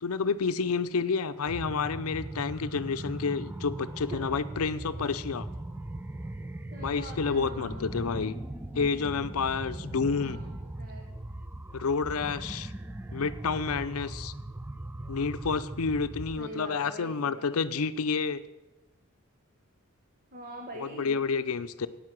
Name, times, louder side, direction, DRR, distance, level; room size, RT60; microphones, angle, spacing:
voice 1, 0.0-5.5 6.8-8.3 8.7-10.4 11.7-12.7 13.1-14.3 15.1-18.4 20.7-21.9, left 5 dB, 80° left, 13 dB, 0.6 m, -29 dB
sound 1, 1.4-16.4, right 1 dB, 10° right, 0.4 m, -39 dB
voice 2, 6.7-7.9 10.0-11.1 16.4-17.5 20.3-21.2, equal, 40° right, 1 dB, 1.2 m, -44 dB
9.5 x 8.7 x 7.5 m, 1.1 s
head